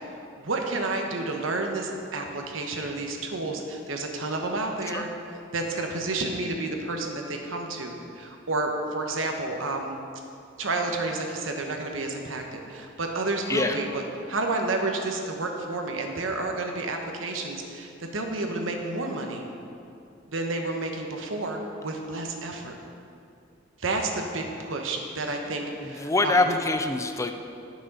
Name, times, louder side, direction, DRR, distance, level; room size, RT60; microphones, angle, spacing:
voice 1, 0.4-10.0 10.6-14.0 14.3-19.4 20.3-22.8 23.8-26.6, right 2 dB, 85° right, 3 dB, 1.1 m, -30 dB
voice 2, 25.8-27.3, left 3 dB, 15° left, 6 dB, 0.4 m, -24 dB
10.5 x 6.2 x 5.4 m, 2.6 s
head